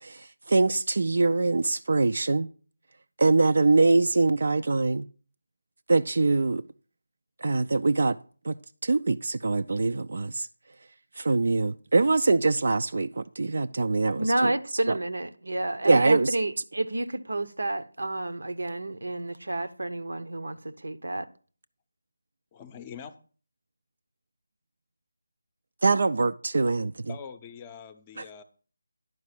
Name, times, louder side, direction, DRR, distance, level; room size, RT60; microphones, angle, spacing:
voice 1, 0.0-2.5 3.2-5.1 5.9-6.6 7.4-8.2 8.4-8.6 8.8-10.5 11.2-14.5 15.8-16.4 25.8-27.1 28.2-28.3, right 3 dB, 60° right, 0.3 m, -23 dB
voice 2, 14.2-21.3, right 2 dB, 80° right, 0.8 m, -30 dB
voice 3, 22.5-23.1 27.1-28.4, left 7 dB, 20° left, 0.6 m, -43 dB
11.0 x 4.7 x 6.0 m
figure-of-eight pair, 165°, 0 cm